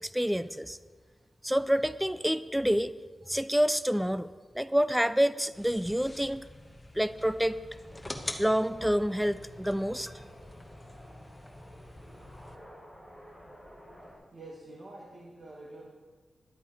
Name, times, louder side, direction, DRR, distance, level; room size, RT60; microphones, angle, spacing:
voice 1, 0.0-0.8 1.4-2.9 3.3-6.4 6.9-7.6 8.4-10.1, equal, 5° right, 14 dB, 0.3 m, -28 dB
sound 1, 5.5-12.6, left 1 dB, 10° left, 1.0 m, -45 dB
sound 2, 7.8-14.2, equal, 20° right, 4.5 m, -52 dB
voice 2, 14.0-15.9, right 2 dB, 40° right, -2 dB, 1.5 m, -47 dB
13.0 x 11.5 x 3.8 m, 1.4 s
wide cardioid pair, 130°, 0 cm